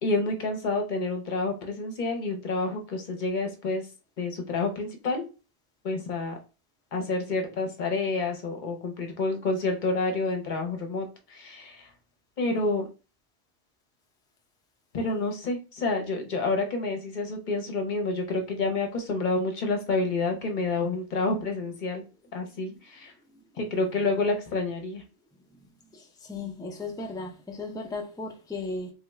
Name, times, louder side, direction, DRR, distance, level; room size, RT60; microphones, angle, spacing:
voice 1, 0.0-3.9 4.2-5.2 5.8-6.4 6.9-11.9 12.4-12.9 14.9-22.0 22.3-23.1 23.6-25.0, left 3 dB, 50° left, 0.8 m, -29 dB
voice 2, 25.9-28.9, left 3 dB, 5° left, 0.3 m, -36 dB
3.6 x 2.3 x 3.0 m
omnidirectional pair, 1.1 m